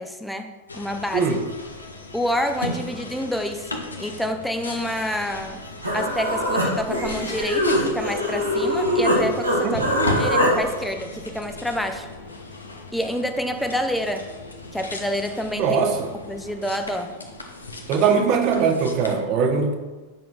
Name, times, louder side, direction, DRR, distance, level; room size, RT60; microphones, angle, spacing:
voice 1, 0.0-1.3 2.1-3.7 4.0-5.6 5.9-9.9 10.2-12.1 12.9-14.3 14.7-15.8 16.3-17.1, equal, 5° left, 5 dB, 0.5 m, -28 dB
sound 1, 0.7-19.1, left 2 dB, 80° left, 0.7 m, -36 dB
Human voice, 5.8-9.2 9.4-10.5, equal, 85° right, 1.7 m, -22 dB
voice 2, 15.6-16.1 17.9-19.7, right 5 dB, 40° right, 5 dB, 0.8 m, -21 dB
8.9 x 5.9 x 2.4 m, 1.3 s
figure-of-eight pair, 90°, 0 cm